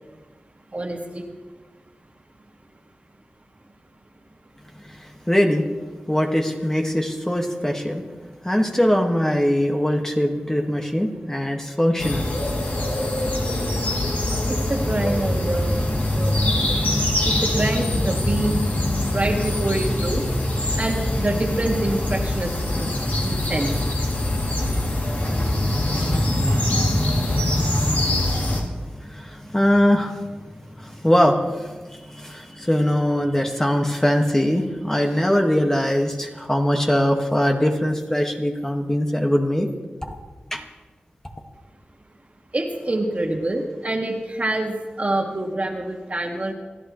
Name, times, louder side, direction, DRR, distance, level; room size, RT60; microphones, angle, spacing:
voice 1, 0.7-1.3 14.5-16.9 17.2-18.6 19.1-20.2 20.8-22.9 23.2-23.7 26.0-26.1 42.5-46.5, right 2 dB, 40° right, 1 dB, 2.1 m, -26 dB
voice 2, 5.3-5.7 6.1-8.1 8.4-12.3 28.0-28.1 29.0-30.1 30.8-31.7 32.1-39.7 40.0-40.2 40.5-40.6, equal, 15° left, 1 dB, 1.8 m, -21 dB
sound 1, 12.0-28.6, left 1 dB, 55° left, 2.9 m, -23 dB
27.5 x 11.5 x 3.2 m, 1.3 s
cardioid pair, 55°, 4 cm